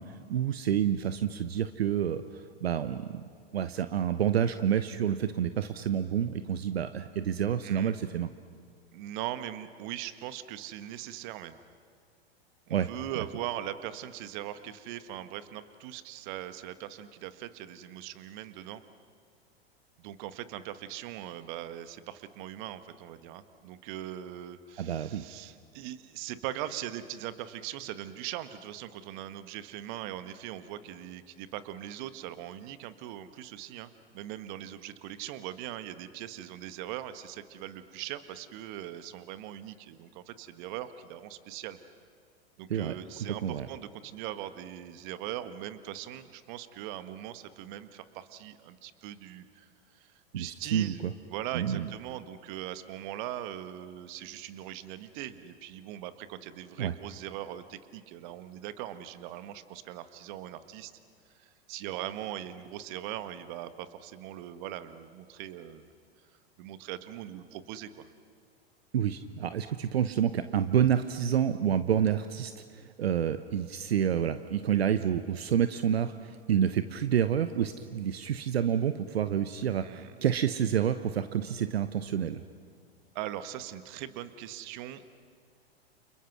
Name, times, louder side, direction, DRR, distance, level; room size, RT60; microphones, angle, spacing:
voice 1, 0.0-3.2 3.5-8.3 12.7-12.9 24.8-25.3 42.7-43.0 43.3-43.7 50.3-51.1 51.5-51.9 56.8-56.9 68.9-82.4, right 9 dB, 75° right, 11 dB, 1.0 m, -28 dB
voice 2, 7.6-8.0 8.9-11.6 12.7-18.8 20.0-41.8 42.6-51.0 51.3-60.9 61.3-65.9 66.6-68.0 79.8-80.1 83.1-85.0, right 12 dB, 50° right, 11 dB, 1.6 m, -40 dB
30.0 x 29.5 x 6.2 m, 2.1 s
hypercardioid pair, 100°, 32 cm